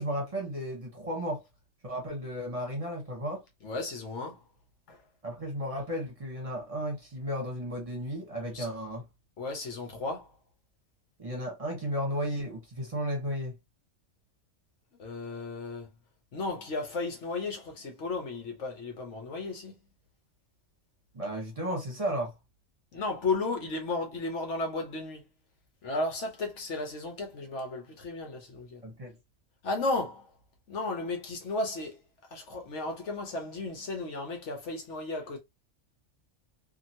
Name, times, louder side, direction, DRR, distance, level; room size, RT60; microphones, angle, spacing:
voice 1, 0.0-1.4 1.8-3.4 5.2-9.0 11.2-13.6 21.1-22.3 28.8-29.2, equal, 30° right, 1.0 m, -34 dB
voice 2, 3.6-4.4 4.9-5.0 8.5-8.7 9.4-10.3 15.0-15.9 16.3-19.8 22.9-25.2 25.8-28.8 29.6-30.3 30.7-32.0 32.3-35.4, left 3 dB, 75° left, 1.2 m, -34 dB
2.8 x 2.5 x 2.7 m
omnidirectional pair, 1.3 m